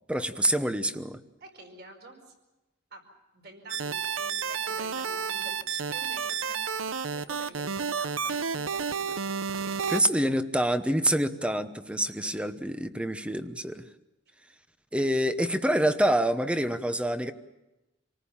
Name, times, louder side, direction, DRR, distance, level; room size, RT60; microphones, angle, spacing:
voice 1, 0.1-1.2 9.9-13.8 14.9-17.3, right 1 dB, 5° right, 10 dB, 1.0 m, -26 dB
voice 2, 1.4-2.3 2.9-3.1 3.3-10.2 12.2-12.4 15.0-15.2, right 2 dB, 55° right, 4 dB, 5.1 m, -49 dB
sound 1, 3.7-10.0, right 6 dB, 80° right, 0.8 m, -31 dB
27.0 x 19.0 x 7.3 m, 0.99 s
head